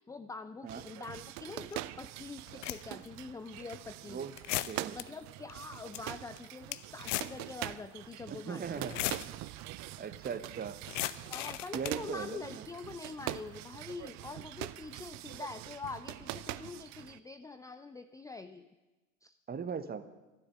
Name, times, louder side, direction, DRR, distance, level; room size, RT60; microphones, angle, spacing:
voice 1, 0.0-4.3 4.9-9.0 11.3-18.7 19.2-19.4, left 3 dB, 10° left, 10 dB, 0.5 m, -45 dB
sound 1, 0.7-17.2, right 16 dB, 40° right, 0.7 m, -44 dB
sound 2, 1.7-1.8 2.4-3.1 3.6-3.7 4.4-5.0 5.5-5.6 5.8-6.0 6.4-7.4 7.7-7.8 8.7-9.3 10.9-12.0, left 16 dB, 65° left, 0.8 m, -36 dB
voice 2, 4.7-5.0 8.3-9.0 10.0-10.8 11.7-12.6 19.5-20.0, right 6 dB, 25° right, 12 dB, 1.2 m, -39 dB
13.0 x 11.0 x 9.9 m, 1.1 s
figure-of-eight pair, 75°, 40 cm